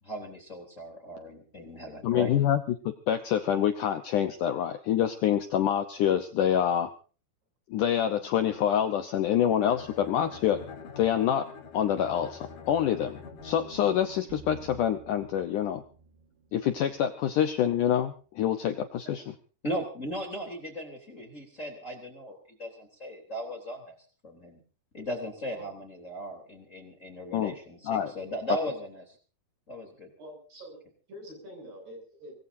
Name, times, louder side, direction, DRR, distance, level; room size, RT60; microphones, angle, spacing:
voice 1, 0.0-2.3 19.6-24.0 24.2-24.6 24.9-29.2 29.7-30.1, equal, 20° left, 3 dB, 3.2 m, -37 dB
voice 2, 2.0-2.6 2.8-6.9 7.7-10.6 11.0-11.5 11.7-13.2 13.4-15.8 16.5-19.2 27.3-27.5 27.9-28.1, left 10 dB, 90° left, 7 dB, 1.8 m, -26 dB
Bowed string instrument, 9.6-14.0, left 5 dB, 75° left, 5.7 m, -45 dB
sound 1, 13.4-17.6, right 4 dB, 85° right, 4.6 m, -51 dB
voice 3, 30.2-30.8 31.1-32.3, equal, 65° right, 3 dB, 9.9 m, -46 dB
25.0 x 20.0 x 2.7 m, 0.39 s
omnidirectional pair, 5.1 m